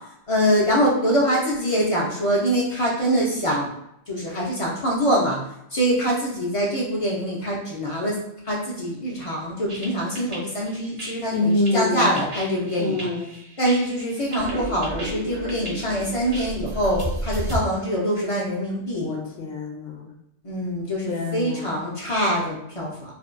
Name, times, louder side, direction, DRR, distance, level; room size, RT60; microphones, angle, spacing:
voice 1, 0.3-3.7 4.1-5.4 5.7-8.2 8.4-13.1 13.6-19.1 20.4-23.1, equal, 50° left, -4 dB, 0.4 m, -24 dB
sound 1, 9.7-17.6, right 1 dB, 40° right, 0.5 m, -34 dB
voice 2, 11.3-12.1 12.8-13.3 18.9-20.1 21.1-21.8, left 2 dB, 65° left, 0 dB, 0.8 m, -26 dB
sound 2, 14.2-17.4 17.8-17.9 18.2-18.3 18.7-18.8, equal, 65° right, 0.8 m, -36 dB
2.6 x 2.1 x 2.4 m, 0.78 s
omnidirectional pair, 1.2 m